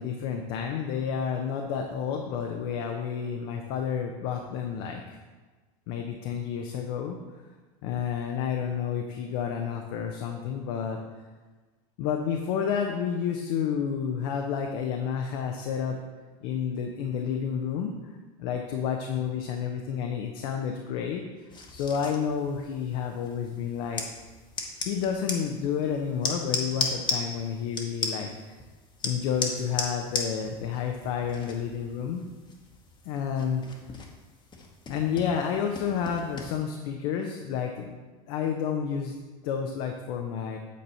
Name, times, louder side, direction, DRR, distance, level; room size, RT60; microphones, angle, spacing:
voice 1, 0.0-5.2 5.9-7.2 7.8-11.0 12.0-16.0 16.4-18.1 18.4-24.0 24.8-28.3 29.0-32.2 33.0-33.6 34.9-37.9 38.3-39.2 39.4-40.6, left 7 dB, 65° left, 3 dB, 0.7 m, -30 dB
sound 1, 21.5-36.6, left 3 dB, 25° left, 1.1 m, -37 dB
8.4 x 4.0 x 4.3 m, 1.3 s
supercardioid pair, 110°, 19 cm